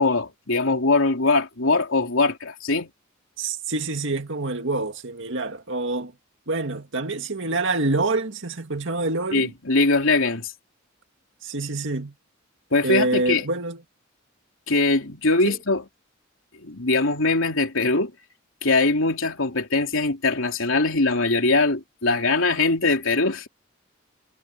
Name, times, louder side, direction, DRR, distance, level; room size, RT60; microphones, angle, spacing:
voice 1, 0.0-2.9 9.3-10.5 12.7-13.5 14.7-15.8 16.6-18.1 18.6-23.5, left 3 dB, 70° left, 3.5 m, -21 dB
voice 2, 3.4-6.1 6.5-9.5 11.4-12.1 12.8-13.8 15.4-15.6, right 2 dB, 65° right, 2.2 m, -26 dB
head